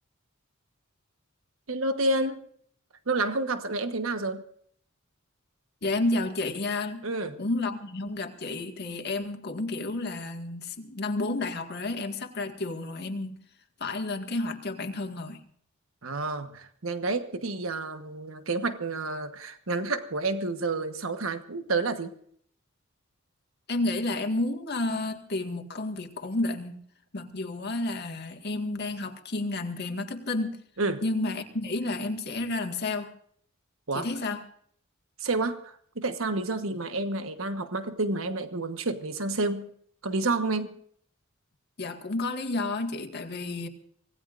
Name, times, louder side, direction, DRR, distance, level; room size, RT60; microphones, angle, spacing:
voice 1, 1.7-2.5 3.1-4.4 7.0-7.4 16.0-22.1 30.8-31.0 33.9-34.1 35.2-39.7 40.0-40.7, right 2 dB, 90° right, 8 dB, 1.3 m, -29 dB
voice 2, 5.8-7.0 7.4-13.4 13.8-15.4 23.7-26.8 27.1-30.6 31.0-33.1 33.9-34.4 41.8-43.7, left 2 dB, 55° left, 5 dB, 1.9 m, -31 dB
25.5 x 18.0 x 2.6 m, 0.63 s
head